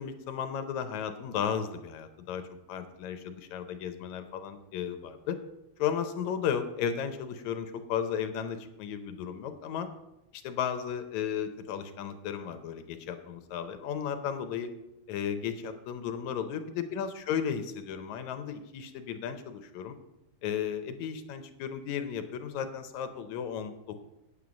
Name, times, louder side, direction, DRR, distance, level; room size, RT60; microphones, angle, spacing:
voice 1, 0.0-5.4 5.8-9.9 10.3-14.7 15.1-20.0 20.4-24.0, left 8 dB, 75° left, 8 dB, 2.0 m, -34 dB
9.3 x 8.4 x 5.1 m, 0.92 s
omnidirectional pair, 3.5 m